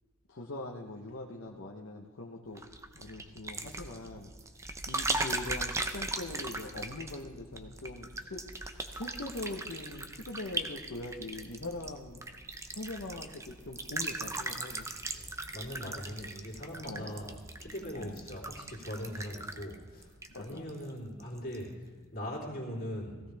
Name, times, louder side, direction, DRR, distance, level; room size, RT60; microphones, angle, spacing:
voice 1, 0.3-2.6 2.9-4.3 4.9-8.4 8.9-12.2 12.7-14.9 16.8-17.2 17.9-18.2 20.3-20.6, left 2 dB, 55° left, 0 dB, 1.0 m, -42 dB
sound 1, 2.6-20.9 21.2-21.6, right 2 dB, 15° right, 0.6 m, -39 dB
voice 2, 15.1-23.2, equal, 40° left, -3 dB, 3.2 m, -41 dB
17.0 x 16.0 x 3.4 m, 1.3 s
head